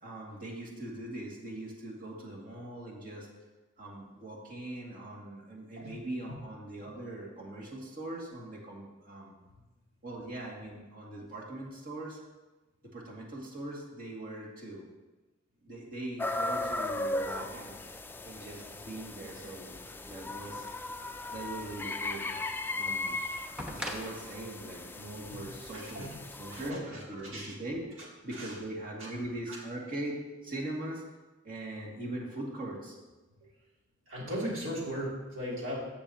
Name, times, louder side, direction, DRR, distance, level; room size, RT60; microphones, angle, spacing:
voice 1, 0.0-3.3 3.8-9.3 10.0-12.2 12.8-14.8 15.6-17.8 18.2-19.7 20.1-20.7 21.0-22.2 22.7-23.2 23.6-26.1 26.4-27.8 28.2-31.0 31.4-33.0 33.4-33.5, right 1 dB, 45° right, -3 dB, 2.2 m, -41 dB
sound 1, 16.2-26.7, left 2 dB, 10° left, 0.4 m, -37 dB
sound 2, 23.6-26.4 27.6-27.7, left 1 dB, 5° right, 1.0 m, -43 dB
voice 2, 25.3-26.2 26.5-27.5 28.3-28.6 29.0-29.1 29.5-29.6 34.1-35.8, equal, 75° right, -5 dB, 3.0 m, -38 dB
14.0 x 7.2 x 2.9 m, 1.1 s
head